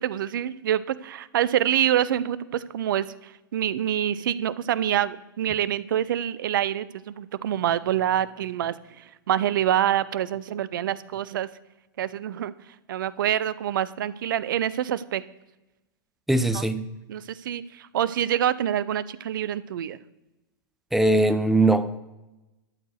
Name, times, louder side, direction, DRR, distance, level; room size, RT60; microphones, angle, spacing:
voice 1, 0.0-11.5 12.0-15.2 16.5-16.6 17.1-20.0, right 11 dB, 65° right, 18 dB, 0.6 m, -26 dB
voice 2, 16.3-16.8 20.9-22.0, right 2 dB, ahead, 10 dB, 0.8 m, -20 dB
12.5 x 4.6 x 8.1 m, 1.0 s
figure-of-eight pair, 100°, 12 cm